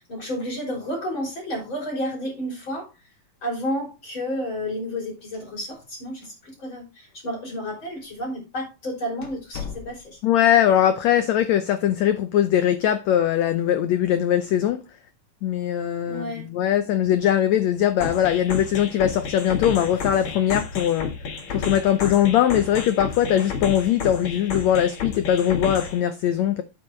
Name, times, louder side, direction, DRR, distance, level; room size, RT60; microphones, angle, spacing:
voice 1, 0.0-2.9 3.4-10.2 16.1-16.5, equal, 35° left, 4.1 m, -31 dB
sound 1, 5.2-6.0 6.2-6.3 7.1-7.2 8.0-8.2 8.6-8.7 9.2-10.3, left 6 dB, 65° left, 3.0 m, -39 dB
voice 2, 10.2-14.8 15.4-16.2 16.5-21.1 21.5-26.6, left 10 dB, 90° left, 1.5 m, -21 dB
sound 2, 18.0-26.0, left 5 dB, 50° left, 1.8 m, -31 dB
9.2 x 8.3 x 3.1 m
omnidirectional pair, 4.1 m